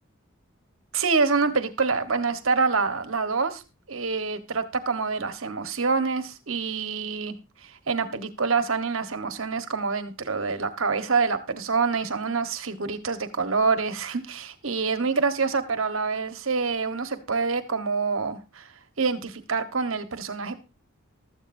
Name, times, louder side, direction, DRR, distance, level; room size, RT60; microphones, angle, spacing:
voice 1, 0.9-3.6 3.9-7.3 7.6-18.7 19.0-20.6, right 4 dB, 80° right, 9 dB, 1.4 m, -26 dB
15.0 x 13.5 x 2.7 m, 0.29 s
head